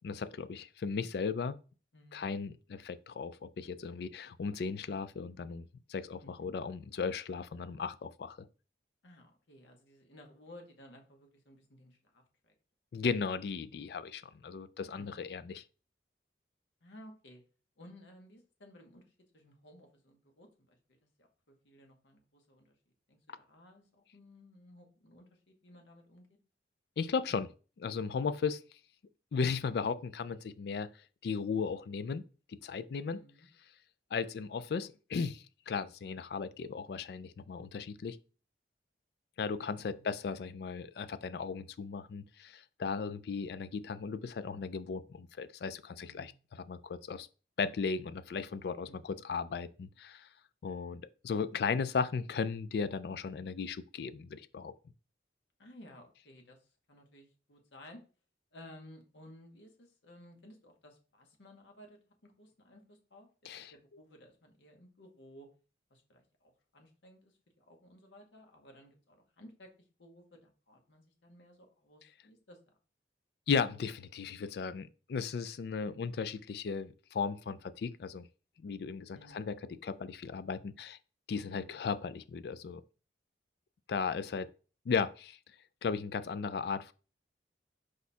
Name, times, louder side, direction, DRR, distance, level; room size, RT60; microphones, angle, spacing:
voice 1, 0.0-1.6 2.1-8.4 12.9-15.6 27.0-27.5 27.8-28.6 29.3-30.9 31.2-32.2 32.5-33.2 34.1-38.2 39.4-46.3 46.6-47.3 47.6-50.3 50.6-54.7 63.5-63.7 73.5-78.3 78.6-81.0 81.3-82.8 83.9-84.5 84.9-85.4 85.8-86.9, left 5 dB, 60° left, 0.3 m, -36 dB
voice 2, 9.0-12.5 12.9-13.1 15.0-15.1 16.8-17.4 17.8-22.8 23.1-26.3 33.1-33.5 39.8-40.1 46.0-46.4 48.9-49.0 55.6-56.6 56.9-58.0 58.5-63.3 63.7-65.5 65.9-69.7 70.0-72.6 79.1-79.4 81.3-81.8, left 1 dB, 75° left, 1.1 m, -57 dB
4.8 x 2.3 x 4.2 m
head